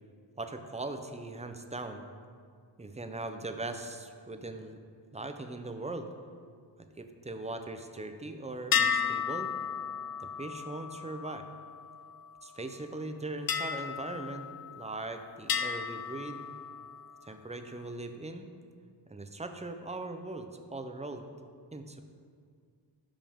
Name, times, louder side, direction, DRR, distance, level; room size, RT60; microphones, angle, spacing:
voice 1, 0.4-2.1 2.8-4.8 5.1-6.1 7.0-9.5 10.2-11.5 12.4-16.4 17.2-18.5 19.1-21.3 21.7-22.0, right 2 dB, 15° right, 7 dB, 0.6 m, -40 dB
sound 1, 8.7-12.4 13.5-15.0 15.5-17.2, left 7 dB, 55° left, 0.5 m, -34 dB
12.0 x 5.3 x 3.6 m, 2.1 s
wide cardioid pair, 85°, 44 cm